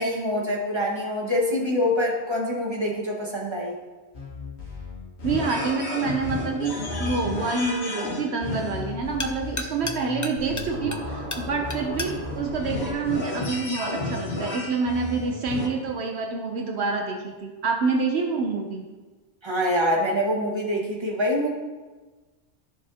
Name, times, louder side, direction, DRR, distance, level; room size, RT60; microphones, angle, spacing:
voice 1, 0.0-3.7 19.4-21.5, left 1 dB, 25° right, -2 dB, 1.6 m, -25 dB
sound 1, 4.1-15.7, left 2 dB, 70° left, 1.9 m, -33 dB
voice 2, 5.2-6.7 7.0-18.8, right 4 dB, 70° right, 3 dB, 1.0 m, -27 dB
sound 2, 7.8-13.7, left 2 dB, 25° left, 0.5 m, -39 dB
Scratching (performance technique), 10.4-12.9, equal, 85° right, 3.3 m, -37 dB
12.5 x 6.8 x 2.8 m, 1.3 s
omnidirectional pair, 1.1 m